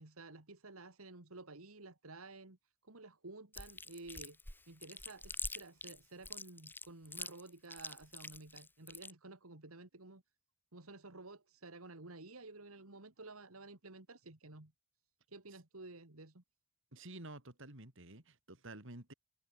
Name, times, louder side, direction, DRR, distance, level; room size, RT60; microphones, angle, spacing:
voice 1, 0.0-2.6 2.8-4.4 4.7-10.2 10.7-14.7 15.3-16.4, right 2 dB, 80° right, 2.4 m, -53 dB
Chewing mastication, 3.5-9.1, left 3 dB, 10° left, 1.4 m, -45 dB
voice 2, 16.9-19.1, right 2 dB, 60° right, 3.8 m, -51 dB
head